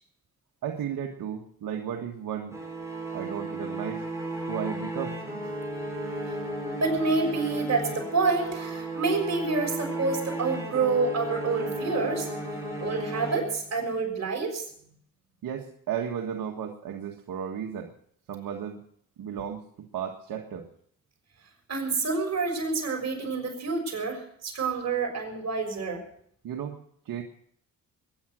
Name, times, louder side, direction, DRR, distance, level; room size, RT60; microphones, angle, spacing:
voice 1, 0.6-2.6 3.1-4.1 4.5-5.2 15.4-17.9 18.3-18.8 19.2-19.6 19.9-20.7 26.4-26.8 27.0-27.2, right 8 dB, 75° right, 1 dB, 1.7 m, -34 dB
sound 1, 2.5-14.0, right 1 dB, 10° right, 6.2 m, -34 dB
voice 2, 6.3-12.3 12.8-14.6 21.7-26.0, right 4 dB, 50° right, 2 dB, 6.4 m, -28 dB
21.0 x 10.0 x 6.2 m, 0.66 s
cardioid pair, 65°, 34 cm